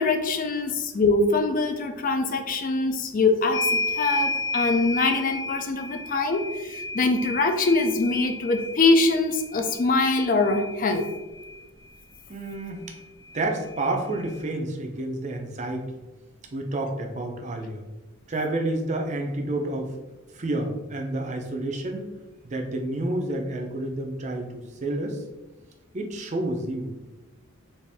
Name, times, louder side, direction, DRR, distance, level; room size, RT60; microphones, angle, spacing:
voice 1, 0.0-11.1, left 3 dB, 40° left, 6 dB, 0.4 m, -23 dB
sound 1, 3.5-11.6 12.9-13.0 13.3-14.4, left 2 dB, 70° left, 1.0 m, -32 dB
voice 2, 12.3-12.8 13.3-15.9 16.5-17.8 18.3-19.9 20.3-22.1 22.4-25.2 25.9-26.9, right 2 dB, 30° right, 2 dB, 0.5 m, -29 dB
4.1 x 2.5 x 3.4 m, 1.1 s
head